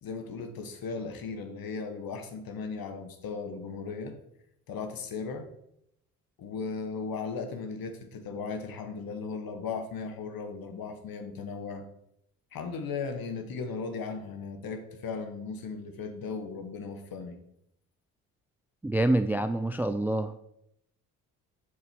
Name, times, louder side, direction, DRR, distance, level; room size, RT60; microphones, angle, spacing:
voice 1, 0.0-4.2 4.7-5.5 6.4-11.8 12.5-17.4, left 4 dB, 55° left, 7 dB, 1.5 m, -37 dB
voice 2, 18.8-20.4, right 1 dB, 5° right, 11 dB, 0.3 m, -26 dB
8.0 x 6.2 x 4.6 m, 0.77 s
hypercardioid pair, 45°, 44 cm